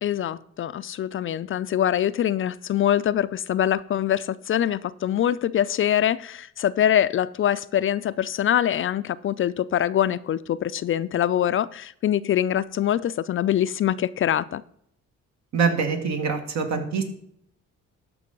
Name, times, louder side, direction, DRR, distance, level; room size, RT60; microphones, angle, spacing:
voice 1, 0.0-14.6, left 10 dB, 45° left, 0.4 m, -24 dB
voice 2, 15.5-17.0, right 5 dB, 65° right, 2.0 m, -24 dB
13.0 x 5.3 x 5.3 m
cardioid pair, 105°, 30 cm